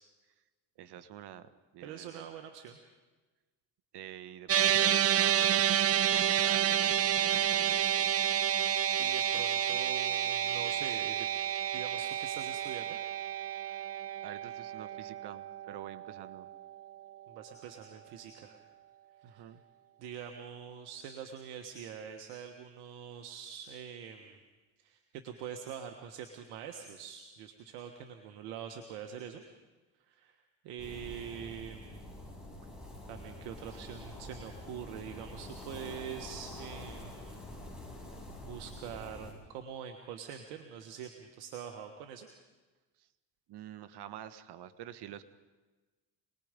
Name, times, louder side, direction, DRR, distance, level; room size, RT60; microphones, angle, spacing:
voice 1, 0.8-2.3 3.9-8.1 13.6-13.8 14.2-16.5 19.2-19.6 33.7-33.8 43.0-43.1 43.5-45.2, right 11 dB, 65° right, 13 dB, 1.4 m, -48 dB
voice 2, 1.8-2.8 9.0-11.3 11.7-13.0 17.3-18.6 19.3-19.4 20.0-24.4 24.8-29.4 30.1-32.1 33.1-37.5 38.0-38.2 38.4-42.3, right 8 dB, 90° right, 5 dB, 1.6 m, -44 dB
sound 1, 4.5-16.9, right 10 dB, 35° right, 0.6 m, -30 dB
sound 2, 30.8-39.3, left 1 dB, ahead, 7.7 m, -47 dB
27.0 x 20.0 x 5.2 m, 1.2 s
supercardioid pair, 80°, 43 cm